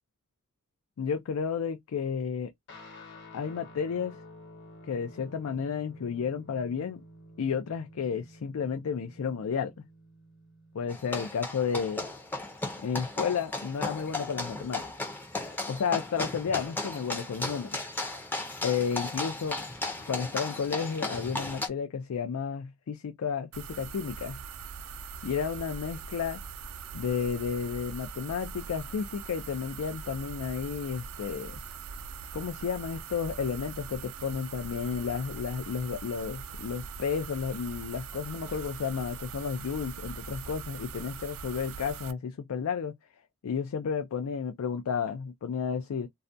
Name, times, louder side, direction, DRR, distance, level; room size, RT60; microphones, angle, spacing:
voice 1, 1.0-2.5 3.3-4.2 4.8-7.0 7.4-9.7 10.7-12.1 12.8-14.8 15.7-17.7 18.6-19.6 20.1-24.4 25.2-26.4 26.9-31.6 32.3-43.0 43.4-46.1, left 6 dB, 80° left, 0.4 m, -32 dB
Guitar, 2.7-11.5, left 1 dB, 50° left, 1.0 m, -51 dB
sound 1, 10.9-21.7, left 2 dB, 10° left, 0.5 m, -35 dB
sound 2, 23.5-42.1, right 6 dB, 70° right, 0.4 m, -42 dB
2.3 x 2.1 x 2.5 m
head